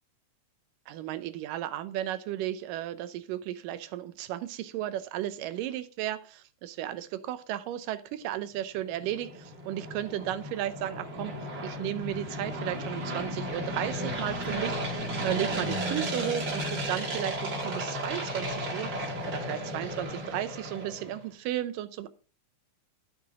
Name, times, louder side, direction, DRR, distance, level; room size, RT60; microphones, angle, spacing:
voice 1, 0.9-22.1, right 12 dB, 85° right, 11 dB, 2.4 m, -34 dB
sound 1, 8.9-21.2, equal, 40° right, 2.4 m, -34 dB
13.5 x 6.0 x 3.6 m, 0.37 s
omnidirectional pair, 3.8 m